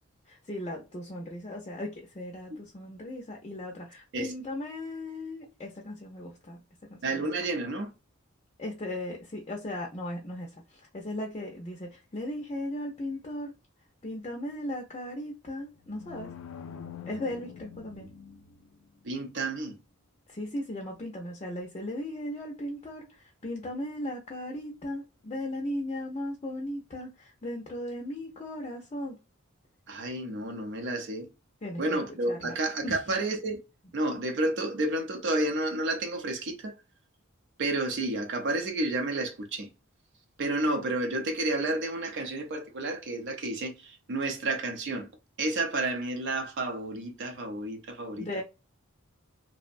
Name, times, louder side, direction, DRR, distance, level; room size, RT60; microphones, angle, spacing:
voice 1, 0.3-7.3 8.6-13.5 14.0-16.3 17.1-18.1 20.3-29.2 31.6-32.0 32.3-32.5 32.8-33.0 48.2-48.4, left 1 dB, 30° left, 0.5 m, -37 dB
voice 2, 7.0-7.9 19.0-19.8 29.9-31.3 31.8-33.6 33.9-36.8 37.6-39.7 40.4-45.1 45.4-48.4, right 2 dB, 60° right, 0.6 m, -31 dB
sound 1, 15.6-18.8, left 7 dB, 90° left, 0.4 m, -45 dB
2.6 x 2.1 x 2.4 m
head